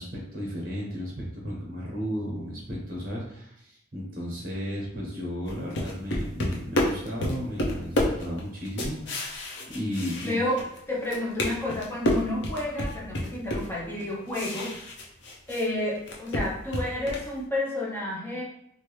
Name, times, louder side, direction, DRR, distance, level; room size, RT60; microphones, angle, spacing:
voice 1, 0.0-10.4, equal, 45° right, -3 dB, 1.1 m, -34 dB
sound 1, 5.4-10.8 11.0-15.7 16.0-17.3, left 1 dB, 65° left, 0.6 m, -30 dB
voice 2, 10.2-14.8 15.5-18.4, left 1 dB, 10° left, -6 dB, 0.7 m, -30 dB
2.9 x 2.5 x 3.2 m, 0.76 s
head